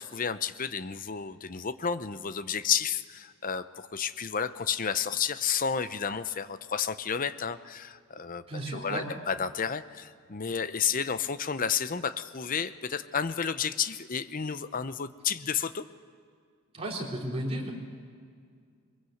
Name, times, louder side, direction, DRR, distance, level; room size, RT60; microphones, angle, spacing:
voice 1, 0.0-8.4 8.7-15.9, left 7 dB, 40° left, 13 dB, 0.7 m, -31 dB
voice 2, 8.5-9.1 16.7-17.7, right 1 dB, 25° right, -2 dB, 3.7 m, -33 dB
22.5 x 22.0 x 7.9 m, 2.1 s
head